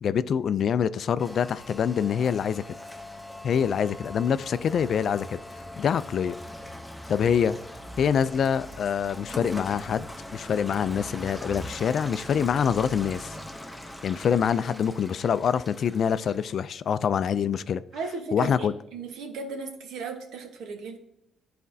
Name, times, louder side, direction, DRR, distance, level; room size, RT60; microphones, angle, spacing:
voice 1, 0.0-2.6 3.4-5.4 5.8-6.4 7.1-7.6 8.0-10.1 10.3-13.4 13.8-17.8 18.3-18.7, left 7 dB, 60° left, 0.3 m, -25 dB
Rain, 1.2-16.6, left 1 dB, 5° left, 0.7 m, -41 dB
voice 2, 17.9-21.0, right 4 dB, 85° right, 1.1 m, -36 dB
11.0 x 4.2 x 2.7 m
cardioid pair, 90°, 0 cm